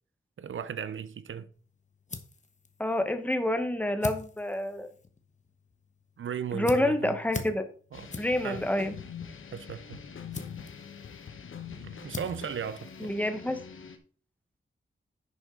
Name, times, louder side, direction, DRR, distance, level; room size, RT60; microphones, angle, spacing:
voice 1, 0.4-1.5 6.2-7.1 7.9-8.1 8.4-8.6 9.5-10.0 12.0-13.1, right 7 dB, 75° right, 0.6 m, -36 dB
sound 1, 1.5-13.6, left 4 dB, 35° left, 1.1 m, -45 dB
voice 2, 2.8-4.9 6.5-7.6 8.2-8.9 13.0-13.6, left 1 dB, 5° left, 1.2 m, -28 dB
sound 2, 7.9-14.0, left 7 dB, 80° left, 1.1 m, -44 dB
10.5 x 6.3 x 3.9 m
wide cardioid pair, 135°, 20 cm